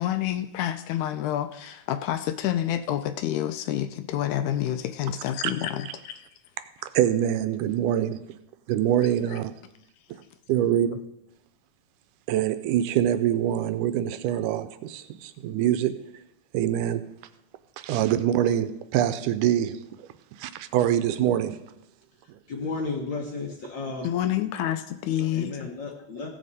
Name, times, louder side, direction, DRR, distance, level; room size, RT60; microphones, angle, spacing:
voice 1, 0.0-6.3 24.0-25.7, left 11 dB, 80° left, 1.8 m, -28 dB
voice 2, 6.9-8.3 8.7-9.5 10.5-11.0 12.3-16.0 16.5-17.1 17.8-20.1 20.4-21.6, right 11 dB, 90° right, 2.2 m, -24 dB
voice 3, 22.5-24.0 25.3-26.3, left 3 dB, 60° left, 1.2 m, -33 dB
15.5 x 7.5 x 4.1 m
omnidirectional pair, 3.6 m